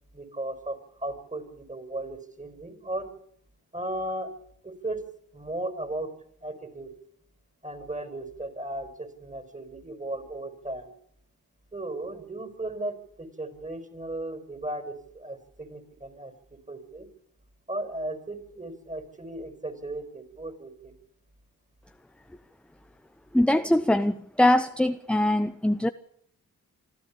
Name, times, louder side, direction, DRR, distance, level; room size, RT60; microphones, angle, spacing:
voice 1, 0.1-3.1 3.7-4.3 4.6-5.0 5.3-6.1 6.4-6.9 7.6-10.9 11.7-17.1 17.7-20.9, right 1 dB, 20° right, 5.0 m, -36 dB
voice 2, 23.3-25.9, left 1 dB, 5° left, 0.8 m, -22 dB
25.5 x 13.0 x 8.6 m
cardioid pair, 45°, 37 cm